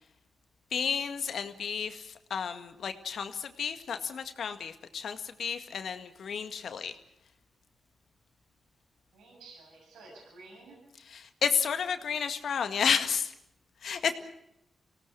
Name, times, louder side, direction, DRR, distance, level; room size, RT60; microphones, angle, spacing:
voice 1, 0.7-6.9 11.1-13.3 13.8-14.1, left 7 dB, 75° left, 8 dB, 1.9 m, -31 dB
voice 2, 9.1-10.8 14.0-14.1, right 3 dB, 90° right, -1 dB, 7.1 m, -52 dB
24.5 x 17.5 x 8.1 m, 0.80 s
supercardioid pair, 50°, 0 cm